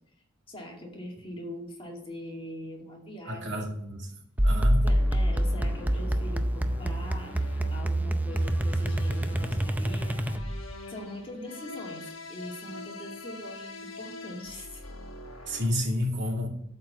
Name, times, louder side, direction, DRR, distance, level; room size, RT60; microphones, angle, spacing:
voice 1, 0.5-3.7 4.8-7.4 7.7-10.2 10.9-14.8, left 1 dB, 25° left, 0 dB, 2.3 m, -42 dB
voice 2, 3.3-4.1 4.4-4.8 15.5-16.5, left 1 dB, 60° right, 1 dB, 2.4 m, -30 dB
sound 1, 4.4-10.7, right 1 dB, 10° right, 0.5 m, -26 dB
sound 2, 5.0-15.7, left 2 dB, 70° left, 1.4 m, -45 dB
12.5 x 4.6 x 7.1 m, 0.74 s
head